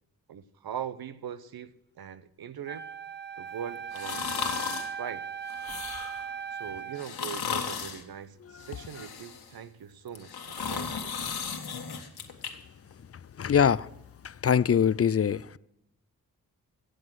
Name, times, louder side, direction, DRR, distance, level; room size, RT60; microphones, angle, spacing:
voice 1, 0.3-2.8 3.4-4.6 5.0-5.3 6.5-11.4, right 8 dB, 75° right, 0.8 m, -41 dB
Wind instrument woodwind instrument, 2.7-7.1, right 7 dB, 30° right, 0.9 m, -38 dB
sound 1, 3.9-4.9 5.5-6.3 7.0-8.0 8.6-9.5 10.1-12.5 12.9-13.0, left 6 dB, 80° left, 1.7 m, -35 dB
voice 2, 13.4-13.9 14.2-15.6, left 8 dB, 40° left, 0.5 m, -24 dB
15.0 x 7.8 x 6.2 m
cardioid pair, 55°, 37 cm